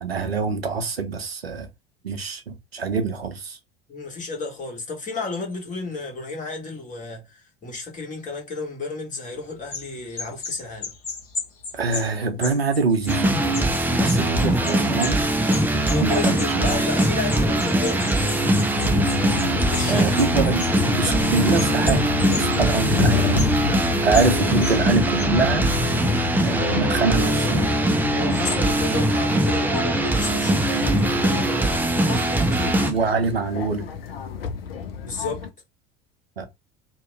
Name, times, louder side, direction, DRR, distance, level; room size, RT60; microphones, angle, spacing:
voice 1, 0.0-1.7 2.0-3.6 11.7-13.4 13.9-15.2 15.7-16.8 19.9-20.7 21.0-23.4 24.0-25.7 26.4-27.7 32.9-33.9 36.4-36.5, right 4 dB, 90° right, 0.6 m, -25 dB
voice 2, 3.9-10.9 15.7-18.3 19.7-20.1 28.1-33.1 35.0-35.4, left 4 dB, 25° left, 1.4 m, -32 dB
sound 1, 9.7-15.2 15.5-22.7 23.0-23.1 23.4-23.6 24.1-24.3 24.6-24.9 25.1-25.3, left 4 dB, 50° left, 1.2 m, -35 dB
sound 2, 13.1-32.9, right 1 dB, 5° right, 0.5 m, -22 dB
sound 3, 18.8-35.5, left 7 dB, 75° left, 0.5 m, -29 dB
2.8 x 2.2 x 3.2 m
figure-of-eight pair, 70°, 30 cm